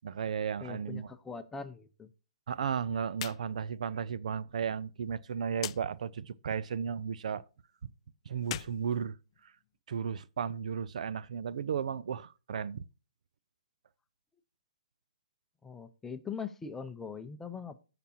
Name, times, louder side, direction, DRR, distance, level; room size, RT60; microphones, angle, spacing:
voice 1, 0.0-1.1 2.5-7.4 8.3-9.2 9.4-9.5 9.9-12.8, right 7 dB, 65° right, 0.5 m, -34 dB
voice 2, 0.6-2.1 15.6-17.8, left 5 dB, 10° left, 0.7 m, -41 dB
sound 1, 3.1-3.4 3.7-3.8 5.6-5.8 8.4-9.7, left 13 dB, 45° left, 0.3 m, -41 dB
17.0 x 6.0 x 2.8 m
hypercardioid pair, 140°, 4 cm